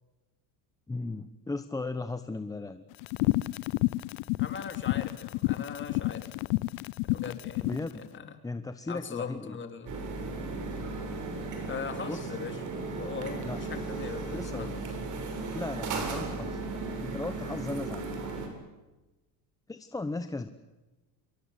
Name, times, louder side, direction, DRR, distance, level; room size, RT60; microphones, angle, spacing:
voice 1, 0.9-2.8 7.6-8.0 8.4-9.6 12.0-12.3 13.4-13.6 14.3-14.7 15.5-16.6 17.0-18.2 19.7-20.5, left 3 dB, 10° left, 9 dB, 0.9 m, -36 dB
sound 1, 3.0-7.9, left 21 dB, 80° left, 0.9 m, -29 dB
voice 2, 4.4-6.3 7.0-7.7 7.9-8.3 8.9-10.0 11.7-12.6 13.0-14.8, left 6 dB, 25° left, 7 dB, 3.2 m, -40 dB
sound 2, 9.9-18.5, right 3 dB, 45° right, 6.9 m, -36 dB
27.0 x 23.5 x 8.2 m, 1.1 s
cardioid pair, 150°, 42 cm